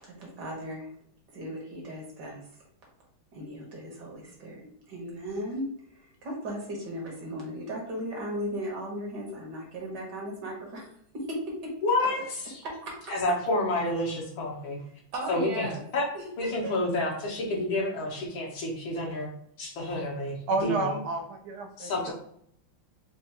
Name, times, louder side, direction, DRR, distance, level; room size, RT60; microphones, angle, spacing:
voice 1, 0.0-0.9 1.3-2.4 3.3-11.7 12.0-12.1 12.6-13.3 15.1-15.8 16.1-16.7, equal, 60° right, -2 dB, 1.7 m, -37 dB
voice 2, 11.8-12.5 13.1-14.8 15.3-15.7 15.9-16.0 16.4-19.3 19.6-21.0 21.8-22.1, left 2 dB, 75° left, -2 dB, 1.8 m, -29 dB
voice 3, 20.5-22.1, right 3 dB, 85° right, 3 dB, 1.6 m, -30 dB
4.7 x 2.5 x 2.8 m, 0.67 s
omnidirectional pair, 2.2 m